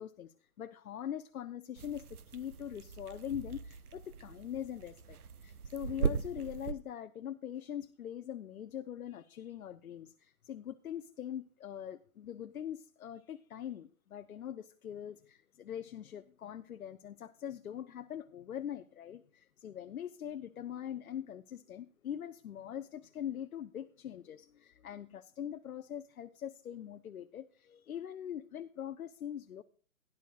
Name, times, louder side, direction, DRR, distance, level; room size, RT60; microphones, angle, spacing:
voice 1, 0.0-29.6, left 10 dB, 75° left, 0.8 m, -42 dB
sound 1, 1.8-6.7, right 6 dB, 85° right, 0.9 m, -39 dB
17.0 x 11.0 x 2.4 m
hypercardioid pair, 170°, 43 cm